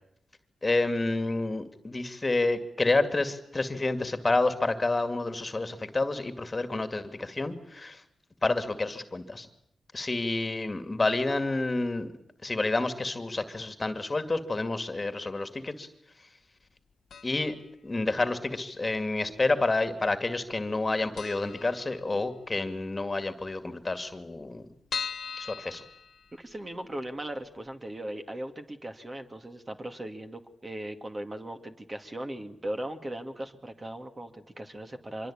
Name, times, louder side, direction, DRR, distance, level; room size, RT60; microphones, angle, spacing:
voice 1, 0.6-8.0 8.4-9.5 9.9-12.1 12.4-15.9 17.2-17.5 17.8-24.7 25.4-25.8, left 2 dB, 30° left, 9 dB, 2.2 m, -29 dB
sound 1, 17.1-17.6 17.9-18.0 18.9-19.6 19.9-20.1 20.4-20.5 20.8-20.9 21.2-22.5 22.9-23.0 23.2-23.3 23.5-23.6 24.1-26.7 27.2-27.3 27.7-27.8, left 6 dB, 70° left, 1.1 m, -39 dB
voice 2, 26.3-35.3, right 1 dB, 25° right, 6 dB, 2.4 m, -38 dB
25.0 x 23.0 x 8.8 m, 0.77 s
cardioid pair, 80°, 0 cm